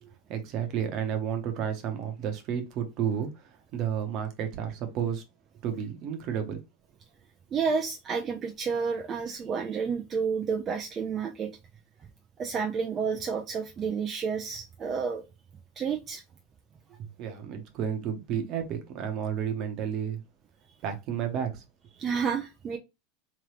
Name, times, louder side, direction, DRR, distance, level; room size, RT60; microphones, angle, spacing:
voice 1, 0.0-5.2 5.6-6.6 16.9-20.2 20.8-21.6, right 8 dB, 50° right, 1.1 m, -32 dB
voice 2, 7.5-11.5 12.4-15.2 15.8-16.2 22.0-22.8, right 6 dB, 35° right, 0.6 m, -30 dB
3.5 x 3.3 x 3.1 m
hypercardioid pair, 95°, 0 cm